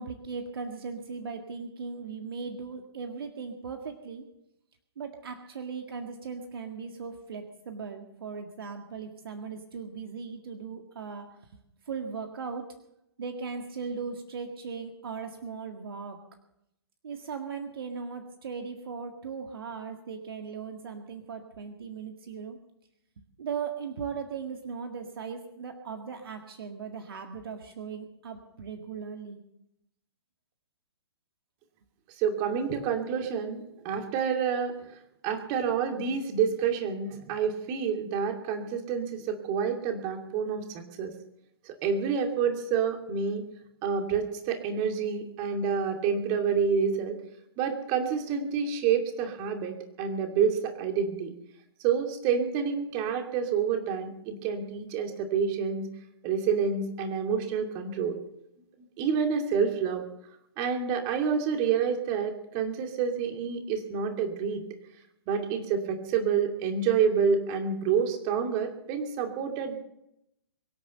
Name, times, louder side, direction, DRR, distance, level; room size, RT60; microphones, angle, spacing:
voice 1, 0.0-4.2 5.0-11.3 11.9-12.6 13.2-16.2 17.0-22.6 23.4-29.4, right 5 dB, 60° right, 5 dB, 1.8 m, -38 dB
voice 2, 32.2-34.9 35.2-41.1 41.6-43.4 43.8-47.2 47.6-51.3 51.8-55.9 56.2-58.2 59.0-60.1 60.6-64.6 65.3-69.8, right 6 dB, 30° right, 4 dB, 2.7 m, -28 dB
23.5 x 8.9 x 6.7 m, 0.82 s
figure-of-eight pair, 120°, 14 cm